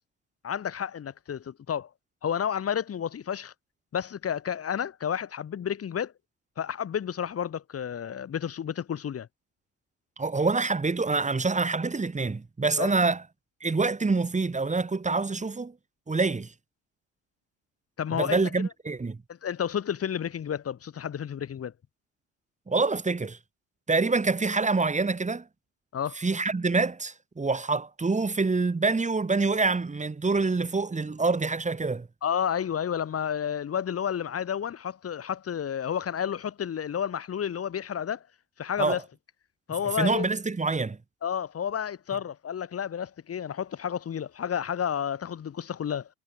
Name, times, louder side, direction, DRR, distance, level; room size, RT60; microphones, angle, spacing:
voice 1, 0.4-1.9 2.2-3.5 3.9-6.1 6.6-9.3 12.8-12.9 18.0-18.4 19.3-21.7 25.9-26.2 32.2-38.2 38.6-39.0 39.7-40.3 41.2-46.1, left 8 dB, 40° left, 5.8 m, -31 dB
voice 2, 10.2-13.2 13.6-15.7 16.1-16.5 18.1-19.2 22.7-23.4 23.9-25.4 26.2-32.1 38.8-39.0 40.0-41.0, right 3 dB, 20° right, 7.8 m, -26 dB
hypercardioid pair, 65°, 37 cm